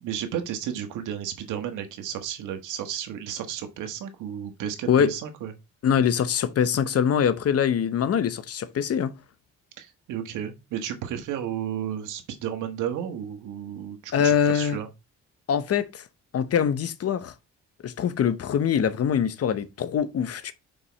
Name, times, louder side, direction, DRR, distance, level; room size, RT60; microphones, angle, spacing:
voice 1, 0.0-5.5 9.8-14.9, right 9 dB, 85° right, 1.4 m, -33 dB
voice 2, 5.8-9.1 14.1-14.8 15.5-16.1 16.3-17.3 17.8-20.5, left 8 dB, 55° left, 1.0 m, -23 dB
5.5 x 5.3 x 4.0 m
cardioid pair, 90°, 30 cm